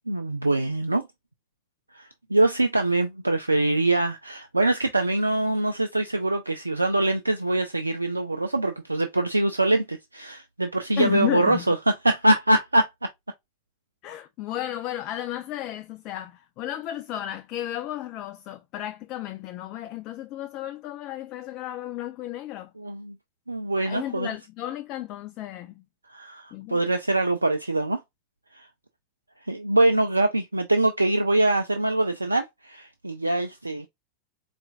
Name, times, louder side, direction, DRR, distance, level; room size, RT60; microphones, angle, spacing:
voice 1, 0.1-1.0 1.9-12.9 22.8-23.2 23.5-24.3 26.1-28.0 28.5-28.7 29.5-33.9, right 2 dB, 80° right, 0.3 m, -24 dB
voice 2, 11.0-11.6 14.0-22.7 23.8-25.8 26.5-26.8, left 13 dB, 40° left, 0.3 m, -33 dB
4.3 x 2.4 x 2.4 m
figure-of-eight pair, 90°, 0 cm